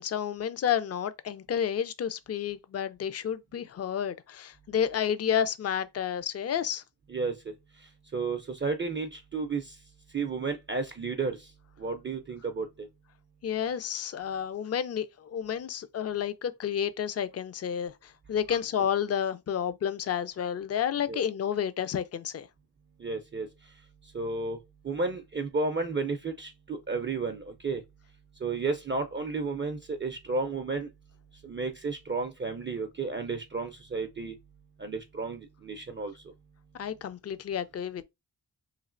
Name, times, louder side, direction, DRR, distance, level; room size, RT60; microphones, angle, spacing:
voice 1, 0.0-6.8 13.4-22.5 36.8-38.0, left 8 dB, 40° left, 0.4 m, -30 dB
voice 2, 7.1-7.5 8.1-9.8 10.1-11.5 11.8-12.9 18.5-18.6 21.1-21.2 23.0-23.5 24.1-24.6 24.8-27.8 28.4-30.9 31.4-34.4 34.8-36.1, right 4 dB, 30° right, 0.4 m, -32 dB
3.1 x 2.4 x 2.5 m
cardioid pair, 50°, 41 cm